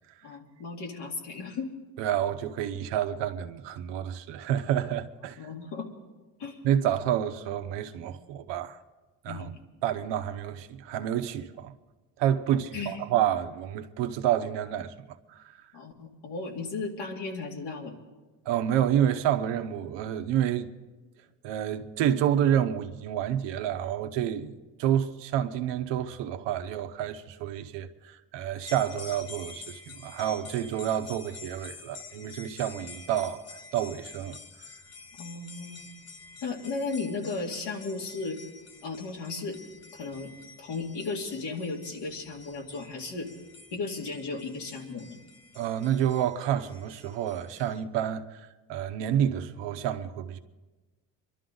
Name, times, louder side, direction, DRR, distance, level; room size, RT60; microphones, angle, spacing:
voice 1, 0.2-1.7 5.4-5.9 6.4-6.6 9.3-9.5 12.7-13.0 15.7-17.9 35.2-35.8 36.4-38.4 38.8-39.6 39.9-40.3 40.6-43.3 43.7-45.2, left 4 dB, 70° left, 2.5 m, -35 dB
voice 2, 2.0-5.4 6.6-8.8 9.2-9.5 9.8-11.7 12.2-14.9 15.3-15.5 18.5-20.7 21.4-24.5 24.8-33.4 33.7-34.4 45.6-50.4, right 10 dB, 85° right, 0.9 m, -29 dB
sound 1, 28.6-47.8, left 4 dB, 35° left, 1.0 m, -48 dB
24.5 x 12.0 x 3.9 m
cardioid pair, 105°, 42 cm